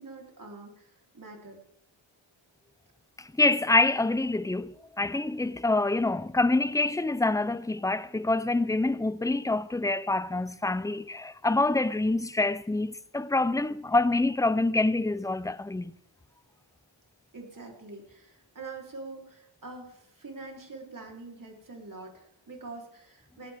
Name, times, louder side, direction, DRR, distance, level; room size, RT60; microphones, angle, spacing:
voice 1, 0.0-1.6 17.3-23.5, right 3 dB, 40° right, 3.9 m, -44 dB
voice 2, 3.2-15.9, left 2 dB, 5° left, 0.5 m, -26 dB
17.5 x 15.0 x 3.6 m
wide cardioid pair, 80°, 48 cm